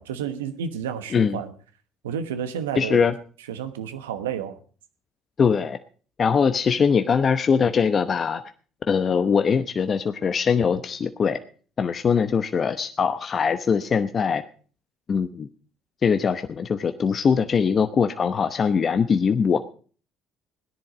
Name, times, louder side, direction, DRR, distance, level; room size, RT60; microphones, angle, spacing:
voice 1, 0.0-1.5 2.0-3.1 3.5-4.6, right 8 dB, 90° right, 10 dB, 1.2 m, -31 dB
voice 2, 2.8-3.1 5.4-5.8 6.2-8.4 8.9-11.4 11.8-14.4 15.1-15.5 16.0-19.6, left 6 dB, 45° left, 9 dB, 0.9 m, -22 dB
17.0 x 10.5 x 5.0 m, 0.42 s
hypercardioid pair, 60°, 0 cm